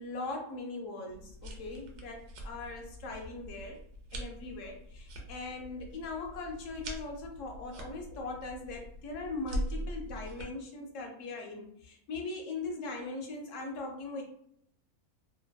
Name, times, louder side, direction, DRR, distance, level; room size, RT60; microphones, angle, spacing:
voice 1, 0.0-3.8 4.1-14.2, left 3 dB, 65° left, 2 dB, 0.8 m, -40 dB
sound 1, 1.1-10.4, right 1 dB, 80° right, 1.1 m, -42 dB
2.6 x 2.5 x 2.2 m, 0.68 s
omnidirectional pair, 1.6 m